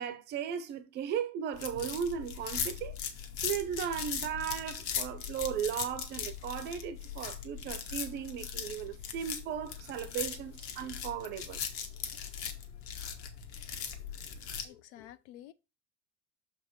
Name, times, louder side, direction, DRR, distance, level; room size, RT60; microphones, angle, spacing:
voice 1, 0.0-3.0 3.4-11.6, right 8 dB, 30° right, 0.6 m, -36 dB
sound 1, 1.5-14.6, left 7 dB, 35° left, 1.1 m, -39 dB
voice 2, 14.6-15.5, left 12 dB, 70° left, 0.7 m, -50 dB
6.5 x 5.1 x 3.6 m
cardioid pair, 180°, 37 cm